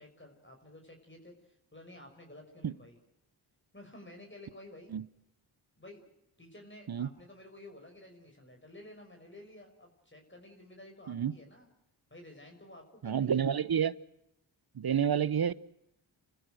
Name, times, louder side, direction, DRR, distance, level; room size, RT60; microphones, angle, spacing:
voice 1, 0.0-3.0 3.7-4.9 5.8-6.1 6.4-11.7 12.1-13.5, left 1 dB, 25° left, 2 dB, 6.0 m, -52 dB
voice 2, 13.0-14.0 14.7-15.5, right 8 dB, 50° right, 19 dB, 0.9 m, -29 dB
30.0 x 15.0 x 7.8 m, 0.81 s
cardioid pair, 55°, 48 cm